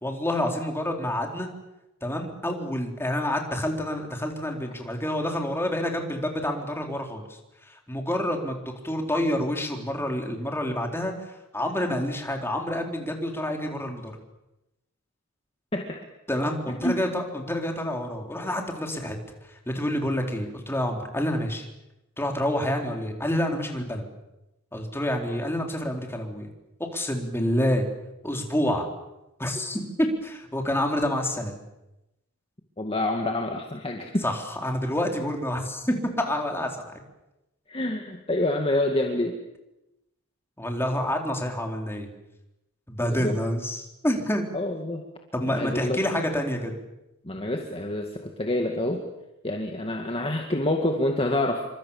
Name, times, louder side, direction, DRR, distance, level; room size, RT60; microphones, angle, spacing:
voice 1, 0.0-1.5 2.0-7.2 7.7-14.1 16.3-19.2 19.5-21.7 22.2-24.1 24.7-26.5 26.8-27.9 28.2-28.9 29.4-29.8 30.2-31.6 34.2-37.0 40.6-42.1 42.9-44.4 45.3-46.7, left 1 dB, 10° left, 2 dB, 4.1 m, -28 dB
voice 2, 32.8-34.2 37.7-39.4 43.0-43.4 44.5-45.0 45.4-46.0 47.2-49.0 49.4-51.8, left 1 dB, 25° left, 2 dB, 2.2 m, -27 dB
28.0 x 25.5 x 7.4 m, 0.94 s
head